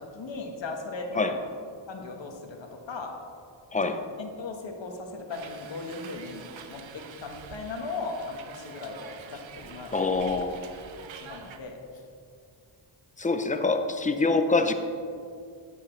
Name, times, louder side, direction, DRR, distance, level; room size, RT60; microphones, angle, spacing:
voice 1, 0.0-1.4 1.9-3.1 3.8-9.9 11.0-11.8, left 3 dB, 70° left, 2 dB, 1.4 m, -38 dB
voice 2, 3.7-4.0 9.9-10.6 13.2-14.7, left 3 dB, 15° left, 8 dB, 0.6 m, -25 dB
Hiss, 5.3-11.6, right 6 dB, 75° right, 0.8 m, -46 dB
10.5 x 9.4 x 3.2 m, 2.4 s
wide cardioid pair, 110°, 47 cm